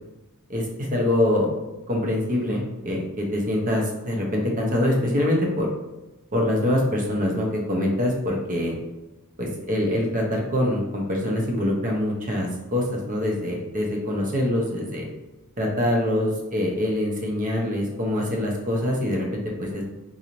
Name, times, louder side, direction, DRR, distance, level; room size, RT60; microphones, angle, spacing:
voice 1, 0.9-1.5 1.9-5.7 6.3-8.8 9.4-15.1 15.6-19.9, left 1 dB, 35° right, -1 dB, 0.7 m, -24 dB
3.9 x 2.7 x 3.0 m, 1.0 s
head